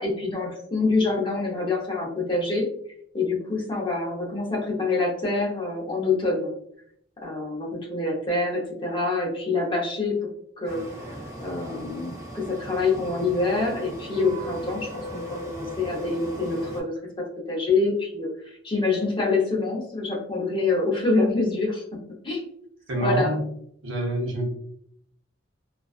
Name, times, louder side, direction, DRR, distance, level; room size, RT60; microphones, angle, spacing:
voice 1, 0.0-2.7 3.1-6.5 7.2-10.3 10.6-10.8 11.4-22.0 22.2-22.4 23.0-23.3, left 3 dB, 25° left, -3 dB, 0.6 m, -26 dB
sound 1, 10.6-16.8, left 1 dB, 15° right, 0.6 m, -37 dB
voice 2, 22.9-23.5 23.8-24.5, right 1 dB, 75° right, 1 dB, 0.7 m, -25 dB
2.4 x 2.3 x 2.3 m, 0.68 s
head